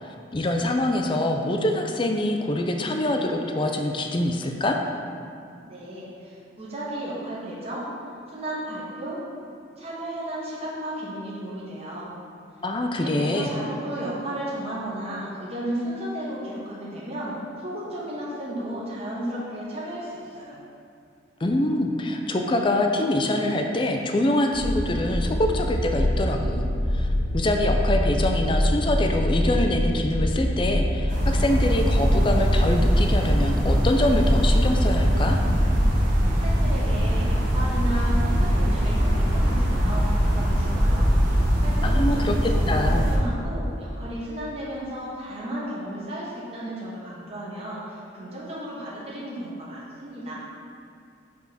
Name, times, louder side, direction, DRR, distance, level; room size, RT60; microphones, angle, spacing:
voice 1, 0.0-4.8 12.6-13.5 21.4-27.1 27.3-35.4 41.8-43.0, left 1 dB, 25° left, 3 dB, 0.4 m, -25 dB
voice 2, 5.6-7.9 8.3-9.2 9.8-12.1 13.0-20.6 36.2-50.4, right 1 dB, 30° right, -7 dB, 1.1 m, -34 dB
sound 1, 24.5-32.0, left 1 dB, 60° left, 0.9 m, -25 dB
sound 2, 31.1-43.2, equal, 45° right, 1.4 m, -21 dB
6.1 x 3.7 x 5.6 m, 2.4 s
head